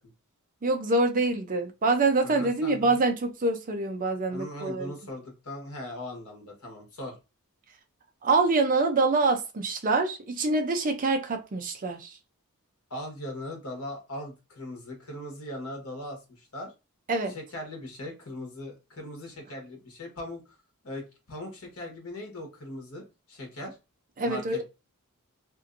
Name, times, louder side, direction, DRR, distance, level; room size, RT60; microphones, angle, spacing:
voice 1, 0.6-4.9 8.2-12.2 17.1-17.3 24.2-24.6, right 3 dB, 40° right, 0.5 m, -25 dB
voice 2, 2.2-3.0 4.3-7.1 12.9-16.7 17.3-20.4 20.8-21.0 21.3-23.0 23.3-23.8 24.2-24.6, left 1 dB, 75° left, 1.2 m, -39 dB
2.7 x 2.6 x 2.5 m
head